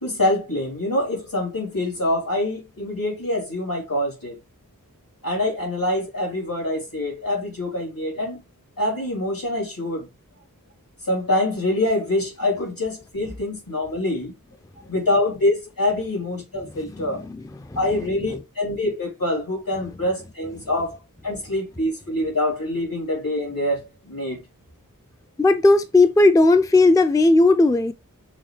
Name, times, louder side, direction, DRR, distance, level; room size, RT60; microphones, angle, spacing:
voice 1, 0.0-4.4 5.2-8.4 8.8-10.1 11.1-14.3 14.9-17.2 17.7-20.9 21.2-24.4, left 1 dB, 75° left, 2.7 m, -25 dB
voice 2, 17.0-17.4 17.7-17.8 25.4-27.9, left 2 dB, 10° left, 0.4 m, -16 dB
6.3 x 2.4 x 3.2 m
wide cardioid pair, 45°, 34 cm